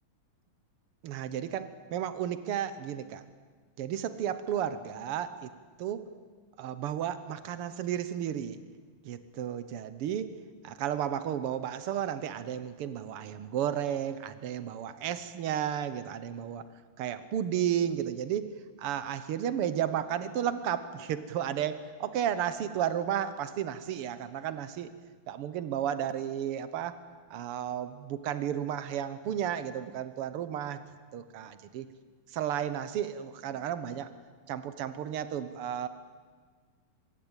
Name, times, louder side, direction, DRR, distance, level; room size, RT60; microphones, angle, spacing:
voice 1, 1.0-3.2 3.8-5.5 5.8-6.1 6.6-8.6 9.0-10.3 10.6-16.6 17.0-18.5 18.8-24.9 25.3-27.0 27.3-30.8 31.1-31.9 32.3-34.1 34.5-35.9, right 10 dB, 85° right, 12 dB, 1.2 m, -33 dB
25.0 x 22.0 x 8.9 m, 1.5 s
omnidirectional pair, 4.0 m